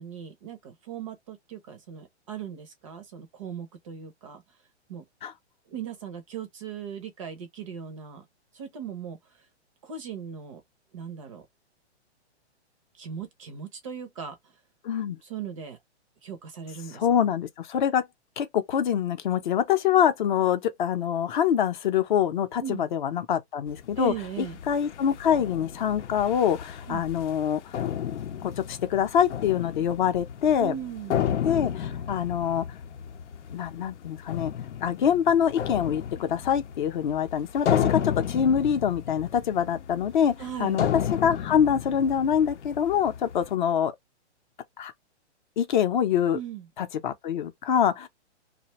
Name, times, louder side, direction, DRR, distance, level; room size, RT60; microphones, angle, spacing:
voice 1, 0.0-4.4 4.9-5.0 5.7-8.3 8.5-9.2 9.8-10.6 10.9-11.4 13.0-14.4 15.2-15.8 16.2-17.1 22.6-22.8 24.0-24.6 26.9-27.0 30.6-31.2 40.4-40.8 46.3-46.7, right 8 dB, 30° right, 0.5 m, -38 dB
voice 2, 14.8-15.2 16.9-18.1 18.4-27.6 28.4-30.7 31.4-32.7 33.5-34.5 34.8-40.3 40.6-40.9 41.2-43.9 44.8-44.9 45.6-46.4 46.8-48.1, left 8 dB, 45° left, 0.6 m, -25 dB
sound 1, 23.7-43.5, left 9 dB, 85° left, 0.7 m, -33 dB
2.5 x 2.1 x 2.9 m
hypercardioid pair, 155°, 34 cm